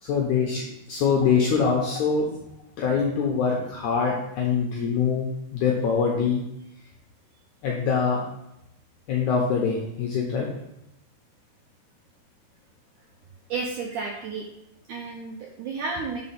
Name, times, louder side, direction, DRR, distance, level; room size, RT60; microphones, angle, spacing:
voice 1, 0.0-2.3 2.8-6.4 7.6-8.2 9.1-10.5, left 6 dB, 80° left, -1 dB, 1.8 m, -24 dB
voice 2, 13.5-14.5 14.9-16.2, right 4 dB, 80° right, 0 dB, 1.8 m, -32 dB
5.6 x 4.3 x 5.7 m, 0.82 s
omnidirectional pair, 4.4 m